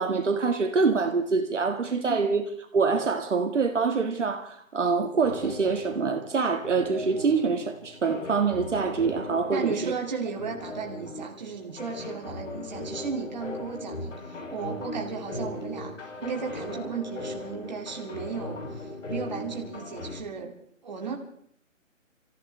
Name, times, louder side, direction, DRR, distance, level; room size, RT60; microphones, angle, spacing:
voice 1, 0.0-2.5 2.7-9.9, right 4 dB, 60° right, 4 dB, 1.8 m, -25 dB
sound 1, 5.2-20.2, left 2 dB, 60° left, 3.4 m, -39 dB
voice 2, 9.5-20.5 20.8-21.2, right 5 dB, 30° right, 1 dB, 2.4 m, -35 dB
29.5 x 15.0 x 3.3 m, 0.65 s
hypercardioid pair, 175°, 41 cm